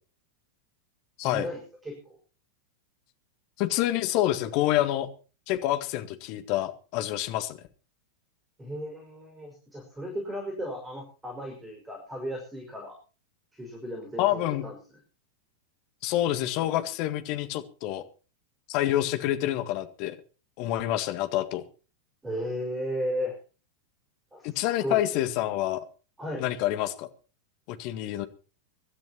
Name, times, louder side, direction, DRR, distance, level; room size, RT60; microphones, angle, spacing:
voice 1, 1.2-1.9 8.6-13.0 13.5-14.8 22.2-23.4 24.3-25.2 26.2-26.5, equal, 10° right, 3 dB, 5.7 m, -35 dB
voice 2, 3.6-5.1 5.5-7.6 14.2-14.6 16.0-18.0 18.7-20.2 20.6-21.6 24.4-25.9 26.4-27.1 27.7-28.3, left 14 dB, 45° left, 8 dB, 1.9 m, -27 dB
24.5 x 13.0 x 3.0 m, 0.36 s
figure-of-eight pair, 90°, 0 cm